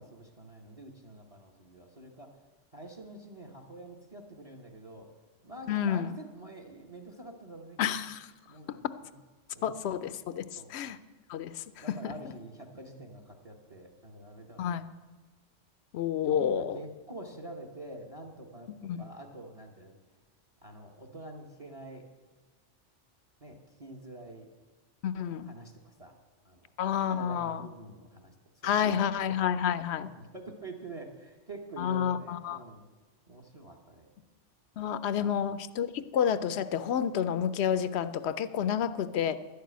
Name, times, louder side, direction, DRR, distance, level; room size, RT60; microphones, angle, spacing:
voice 1, 0.0-2.3 2.7-5.1 5.4-8.0 8.5-9.1 9.5-9.7 10.6-10.7 11.8-14.7 16.2-18.7 19.0-20.0 20.6-22.1 23.4-24.5 25.4-26.2 26.4-26.7 27.1-29.1 29.9-32.8 33.3-34.1 35.2-35.3, right 1 dB, 30° right, 2 dB, 1.0 m, -46 dB
voice 2, 5.7-6.1 7.8-8.3 8.7-8.8 9.6-11.0 11.3-12.1 14.6-14.9 15.9-16.8 18.7-19.0 25.0-25.5 26.8-27.7 28.6-30.1 31.8-32.6 34.8-39.4, left 8 dB, 65° left, 13 dB, 0.8 m, -30 dB
11.5 x 6.7 x 9.2 m, 1.3 s
omnidirectional pair, 1.2 m